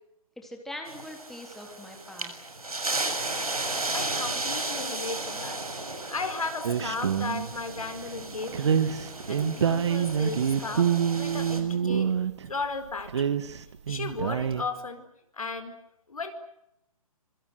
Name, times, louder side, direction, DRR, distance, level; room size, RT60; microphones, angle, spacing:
voice 1, 0.4-2.4, left 1 dB, ahead, 2 dB, 3.5 m, -42 dB
sound 1, 0.9-11.6, right 2 dB, 80° right, 7.2 m, -34 dB
voice 2, 3.9-5.6 6.0-8.8 9.3-12.1 12.5-13.3 13.9-15.0 15.3-15.7 16.1-16.3, left 3 dB, 70° left, 9 dB, 4.8 m, -35 dB
sound 2, 6.6-7.6 8.5-12.5 13.0-14.6, right 8 dB, 50° right, 2.0 m, -26 dB
26.0 x 25.5 x 8.1 m, 0.80 s
figure-of-eight pair, 135°, 19 cm